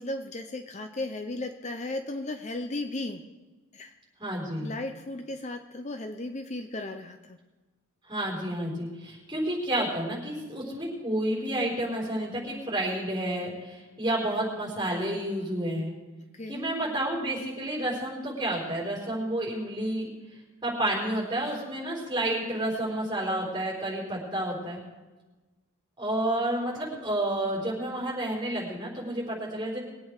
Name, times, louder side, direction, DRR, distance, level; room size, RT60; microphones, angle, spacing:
voice 1, 0.0-3.2 3.7-3.9 4.6-7.4 16.3-16.6, left 2 dB, 30° left, 7 dB, 0.7 m, -35 dB
voice 2, 4.2-4.7 8.1-15.9 16.5-20.1 20.6-24.8 26.0-29.8, right 1 dB, 20° right, -3 dB, 4.5 m, -30 dB
22.0 x 8.7 x 4.8 m, 1.2 s
head